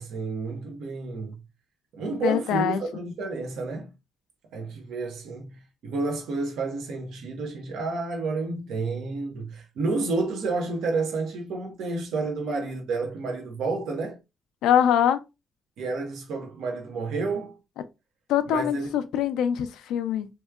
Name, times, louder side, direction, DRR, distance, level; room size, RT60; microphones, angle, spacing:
voice 1, 0.0-1.4 1.9-3.9 4.5-14.2 15.8-17.6 18.5-18.9, right 3 dB, 80° right, 1.0 m, -30 dB
voice 2, 2.2-2.8 14.6-15.2 18.3-20.3, left 9 dB, 90° left, 0.4 m, -23 dB
3.5 x 2.9 x 2.3 m
cardioid pair, 90°, 0 cm